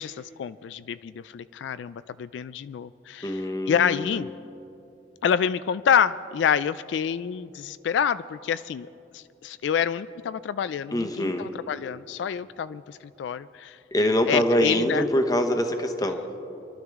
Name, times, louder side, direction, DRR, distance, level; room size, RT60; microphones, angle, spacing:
voice 1, 0.0-3.4 3.7-4.3 5.2-8.9 9.1-13.8 14.3-15.0, left 8 dB, 80° left, 14 dB, 0.3 m, -27 dB
voice 2, 3.2-4.3 10.9-11.5 13.9-16.2, equal, 20° left, 6 dB, 1.0 m, -24 dB
26.0 x 12.0 x 3.6 m, 2.9 s
head